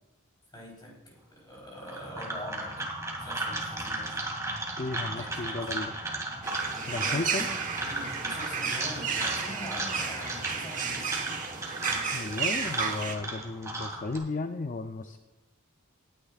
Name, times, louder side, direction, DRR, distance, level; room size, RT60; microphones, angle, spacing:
voice 1, 0.5-2.7 3.2-4.2 5.1-5.7 7.0-7.5 7.9-11.2, equal, 20° left, -3 dB, 3.9 m, -43 dB
sound 1, 1.8-14.2, right 2 dB, 15° right, 2.3 m, -35 dB
voice 2, 4.8-5.9 6.9-7.5 12.1-15.2, left 3 dB, 35° left, 8 dB, 0.4 m, -34 dB
sound 2, 6.4-13.2, right 6 dB, 35° right, 1.2 m, -33 dB
20.0 x 10.0 x 2.4 m, 1.1 s
head